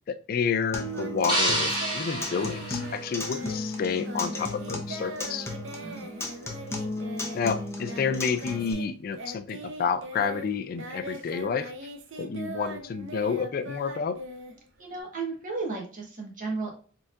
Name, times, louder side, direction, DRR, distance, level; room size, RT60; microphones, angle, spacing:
voice 1, 0.1-5.5 7.3-11.7 12.2-14.2, left 6 dB, 50° left, 12 dB, 0.3 m, -30 dB
Acoustic guitar, 0.7-8.7, left 2 dB, 15° left, 0.7 m, -35 dB
Singing, 0.9-8.9 9.1-15.0, right 2 dB, 80° right, 0.7 m, -41 dB
sound 1, 1.3-3.6, right 1 dB, 25° right, 2.0 m, -29 dB
voice 2, 14.8-16.7, right 4 dB, 45° right, 0 dB, 1.3 m, -34 dB
4.4 x 3.5 x 2.4 m, 0.41 s
head